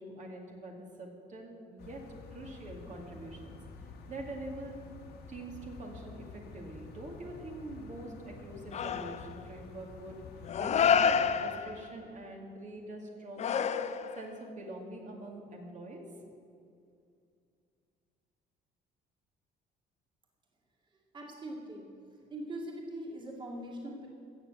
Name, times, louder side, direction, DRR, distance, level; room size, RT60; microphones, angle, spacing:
voice 1, 0.0-2.0 2.3-3.6 4.1-4.8 5.3-10.2 10.6-13.7 14.2-16.0, right 2 dB, 45° right, 0 dB, 2.2 m, -44 dB
sound 1, 1.8-11.4, left 4 dB, 75° left, 1.8 m, -49 dB
sound 2, 8.7-9.4 10.4-11.9 13.4-14.3, left 7 dB, 40° left, 0.6 m, -28 dB
voice 2, 21.1-21.9 22.3-24.1, right 1 dB, 30° right, 0 dB, 2.1 m, -41 dB
15.0 x 7.1 x 8.0 m, 2.4 s
cardioid pair, 110°, 17 cm